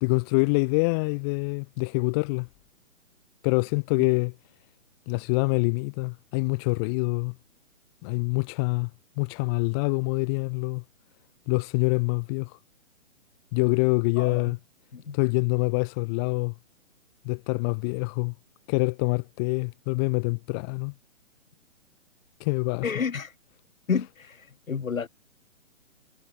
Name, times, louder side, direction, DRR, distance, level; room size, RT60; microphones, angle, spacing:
voice 1, 0.0-2.5 3.4-4.3 5.1-7.3 8.0-8.9 9.2-10.8 11.5-12.5 13.5-14.6 15.1-16.5 17.2-18.3 18.7-20.9 22.4-22.9, left 31 dB, 20° left, 1.0 m, -25 dB
voice 2, 14.2-14.5 14.9-15.2 22.8-23.3 23.9-24.1 24.7-25.1, left 6 dB, 75° left, 3.9 m, -29 dB
hypercardioid pair, 150°, 41 cm